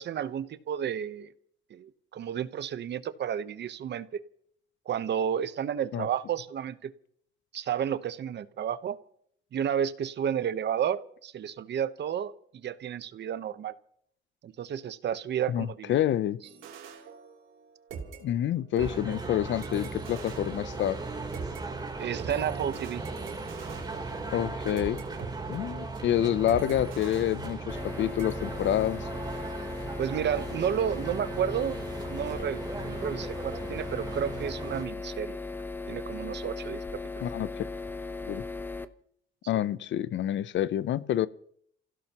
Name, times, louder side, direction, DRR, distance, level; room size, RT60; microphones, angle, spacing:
voice 1, 0.0-1.3 1.7-4.2 4.9-6.9 7.5-9.0 9.5-13.7 14.4-16.0 22.0-23.0 30.0-31.8 32.1-35.4 35.9-37.0, right 9 dB, 60° right, 1.0 m, -31 dB
voice 2, 15.5-16.4 18.2-21.0 24.3-25.0 25.5-29.1 37.2-37.7 38.2-38.4 39.5-41.3, left 11 dB, 70° left, 0.7 m, -28 dB
sound 1, 16.4-17.6 17.9-21.6 22.2-25.3 25.6-25.9 26.5-27.9 28.2-28.4, right 6 dB, 85° right, 3.2 m, -44 dB
sound 2, 18.8-34.8, right 3 dB, 20° right, 3.6 m, -37 dB
sound 3, 27.7-38.9, left 3 dB, 10° left, 0.9 m, -38 dB
29.0 x 16.0 x 3.0 m
cardioid pair, 90°, 20 cm